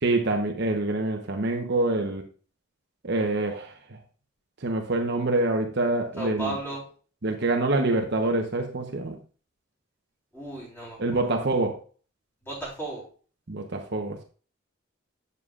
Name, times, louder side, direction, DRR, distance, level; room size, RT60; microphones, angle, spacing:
voice 1, 0.0-2.2 3.0-3.7 4.6-6.5 7.2-9.2 11.0-11.7 13.5-14.2, right 2 dB, 55° right, 3 dB, 1.0 m, -26 dB
voice 2, 6.2-6.8 10.3-11.2 12.4-13.0, right 2 dB, 10° left, -6 dB, 3.6 m, -35 dB
8.2 x 7.3 x 2.4 m, 0.40 s
head